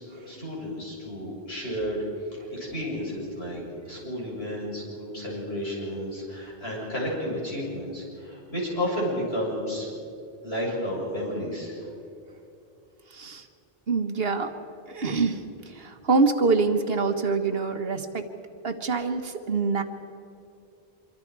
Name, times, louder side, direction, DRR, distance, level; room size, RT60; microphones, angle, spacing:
voice 1, 0.0-2.0 2.5-9.9 10.4-11.8, equal, 80° left, -5 dB, 7.5 m, -32 dB
voice 2, 13.1-13.5 13.9-14.5 14.9-18.2 18.6-19.8, right 4 dB, 70° right, 7 dB, 1.5 m, -25 dB
25.5 x 24.5 x 4.7 m, 2.6 s
omnidirectional pair, 1.0 m